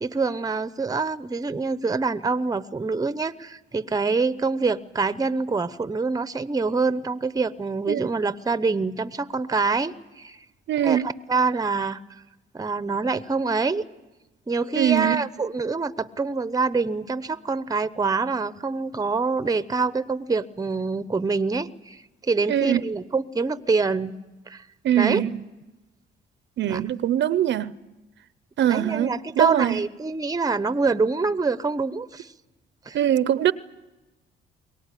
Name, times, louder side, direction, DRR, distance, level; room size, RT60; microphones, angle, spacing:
voice 1, 0.0-10.4 10.8-12.0 12.5-13.8 14.5-24.2 24.5-24.6 24.9-25.2 26.7-26.8 28.6-32.3 32.9-33.0, right 4 dB, 20° right, 0.8 m, -25 dB
voice 2, 10.7-11.1 14.8-15.2 22.5-22.8 24.8-25.4 26.6-27.7 28.6-29.8 32.9-33.5, right 11 dB, 65° right, 0.7 m, -22 dB
23.0 x 18.0 x 9.9 m
cardioid pair, 90°, 20 cm